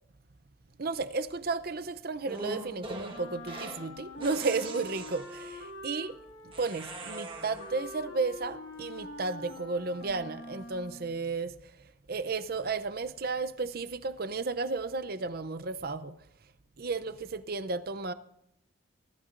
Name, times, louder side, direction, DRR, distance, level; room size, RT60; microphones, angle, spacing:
voice 1, 0.8-6.2 6.6-11.8 12.1-16.2 16.8-18.1, right 4 dB, 50° right, 0.7 m, -33 dB
sound 1, 2.3-3.9 4.2-5.7 6.5-7.9, right 2 dB, 25° right, 1.5 m, -41 dB
Wind instrument woodwind instrument, 3.1-11.2, left 2 dB, 75° left, 2.3 m, -45 dB
20.0 x 13.0 x 2.6 m
head